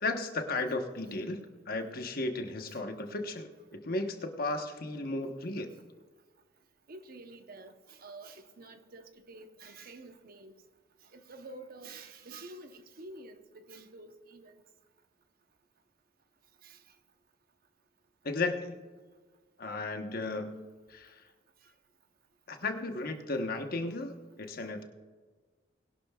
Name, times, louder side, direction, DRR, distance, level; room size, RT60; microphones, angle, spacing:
voice 1, 0.0-5.7 18.2-18.7 19.6-20.6 20.9-21.2 22.5-24.8, left 2 dB, 55° left, 1.1 m, -35 dB
voice 2, 6.9-10.5 11.1-14.5 16.6-16.8, right 2 dB, 55° right, 0.9 m, -49 dB
20.5 x 11.5 x 2.4 m
head